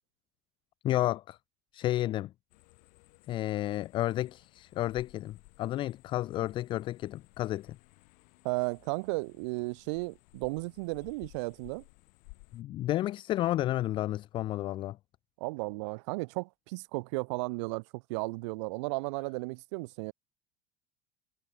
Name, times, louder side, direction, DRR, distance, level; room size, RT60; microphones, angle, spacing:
voice 1, 0.8-1.4 1.7-2.3 3.3-7.8 12.5-15.0, left 14 dB, 35° left, 0.4 m, -31 dB
sound 1, 2.5-12.6, left 40 dB or more, 70° left, 5.6 m, -58 dB
voice 2, 8.4-11.8 15.4-20.1, right 27 dB, 85° right, 0.5 m, -34 dB
cardioid pair, 160°, 15 cm